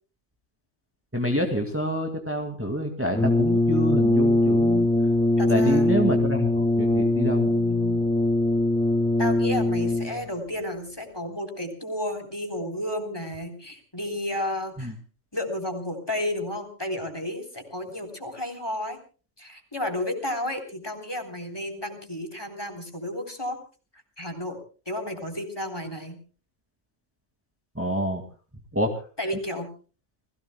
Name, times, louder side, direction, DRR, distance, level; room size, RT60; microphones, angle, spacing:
voice 1, 1.1-4.9 5.5-7.5 14.8-14.9 27.8-28.2 28.7-28.9, equal, 10° right, 2 dB, 2.1 m, -27 dB
Brass instrument, 3.1-10.3, left 1 dB, 5° left, 1.2 m, -22 dB
voice 2, 5.4-5.9 7.5-8.1 9.2-14.9 15.3-19.0 19.4-23.6 24.2-24.6 24.9-26.2 29.2-29.7, left 1 dB, 20° left, 7 dB, 3.7 m, -32 dB
29.5 x 17.5 x 2.2 m, 0.38 s
omnidirectional pair, 1.2 m